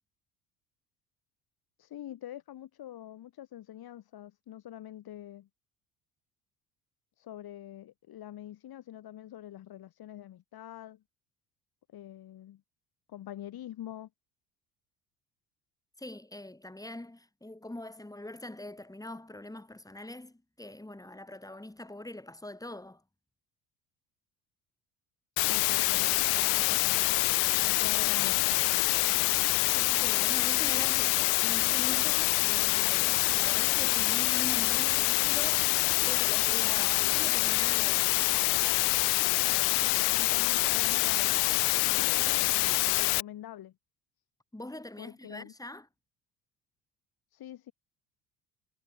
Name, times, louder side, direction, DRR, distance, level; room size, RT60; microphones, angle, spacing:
voice 1, 1.8-5.5 7.2-11.0 11.9-12.6 13.1-14.1 25.4-27.0 27.6-28.5 40.2-41.4 41.7-43.7 45.0-45.5 47.3-47.7, left 12 dB, 50° left, 5.0 m, -45 dB
voice 2, 16.0-23.0 29.7-38.1 44.5-45.9, left 1 dB, 5° left, 7.0 m, -43 dB
sound 1, 25.4-43.2, left 40 dB or more, 65° left, 1.0 m, -26 dB
hypercardioid pair, 65°, 47 cm